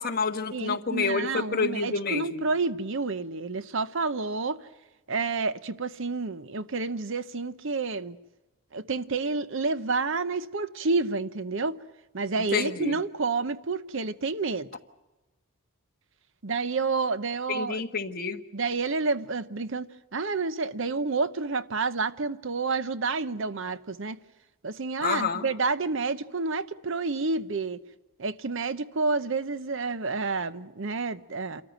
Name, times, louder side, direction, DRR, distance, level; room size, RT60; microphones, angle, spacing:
voice 1, 0.0-2.4 12.5-13.0 17.5-18.4 25.0-25.5, left 4 dB, 45° left, 1.5 m, -28 dB
voice 2, 0.5-4.6 5.1-8.2 8.7-11.8 12.1-14.7 16.4-17.8 18.5-24.2 24.6-27.8 28.2-31.6, right 4 dB, 60° right, 0.8 m, -29 dB
28.0 x 14.0 x 9.1 m
head